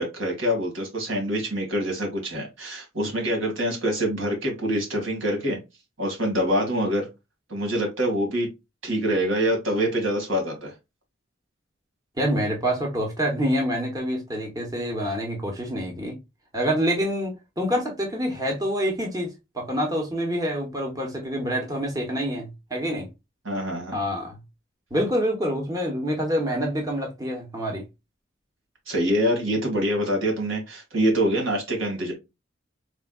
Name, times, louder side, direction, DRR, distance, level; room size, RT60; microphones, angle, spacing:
voice 1, 0.0-5.6 6.0-7.1 7.5-8.5 8.8-10.7 23.4-24.0 28.9-32.1, equal, 85° right, 2.1 m, -25 dB
voice 2, 12.2-16.2 16.5-19.3 19.5-23.1 23.9-24.4 24.9-27.8, equal, 20° right, 1.0 m, -26 dB
4.8 x 3.5 x 2.3 m
head